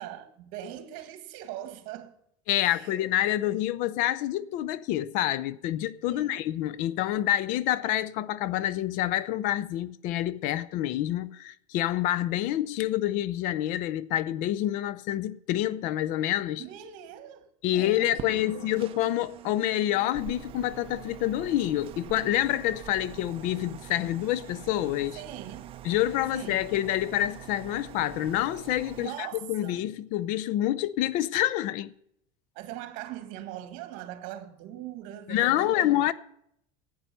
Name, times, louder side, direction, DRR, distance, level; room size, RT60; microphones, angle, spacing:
voice 1, 0.0-2.1 2.6-3.1 6.1-6.4 16.6-18.7 25.1-25.8 26.3-26.7 29.0-29.9 32.6-36.0, right 12 dB, 60° right, 1.7 m, -41 dB
voice 2, 2.5-16.7 17.6-25.2 25.8-31.9 35.3-36.1, left 13 dB, 55° left, 0.6 m, -27 dB
sound 1, 18.2-29.1, right 12 dB, 35° right, 0.7 m, -44 dB
11.5 x 8.9 x 6.8 m
cardioid pair, 150°, 16 cm